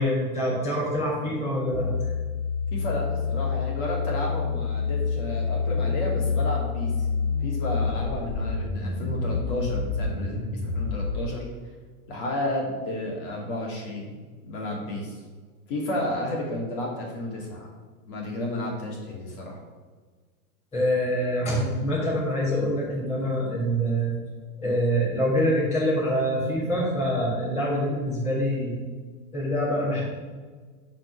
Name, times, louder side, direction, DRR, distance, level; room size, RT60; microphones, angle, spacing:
voice 1, 0.0-2.1 20.7-24.1 24.6-28.8 29.3-30.0, equal, 15° left, -8 dB, 2.9 m, -25 dB
sound 1, 1.7-11.3, left 5 dB, 65° left, 2.2 m, -28 dB
voice 2, 2.7-6.9 7.4-11.4 12.1-14.1 14.4-15.2 15.7-17.7 18.0-19.6, left 1 dB, 35° left, -2 dB, 2.6 m, -32 dB
10.5 x 4.5 x 6.2 m, 1.5 s
supercardioid pair, 175°, 46 cm